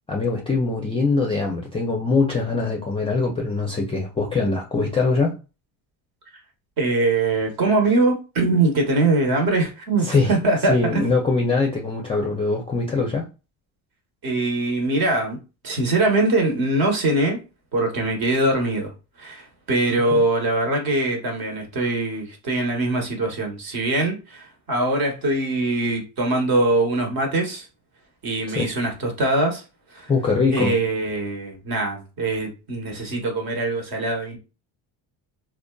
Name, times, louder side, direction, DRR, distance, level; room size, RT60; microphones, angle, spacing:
voice 1, 0.1-5.4 10.0-10.3 10.7-13.3 20.1-20.2 28.5-28.7 30.1-30.8, left 3 dB, 15° left, 0.4 m, -22 dB
voice 2, 6.8-11.0 14.2-15.4 15.6-17.4 17.7-18.9 19.2-27.7 28.2-29.6 29.9-30.1 30.5-34.4, right 2 dB, 55° right, 1.0 m, -22 dB
2.5 x 2.2 x 2.2 m
supercardioid pair, 90°, 42 cm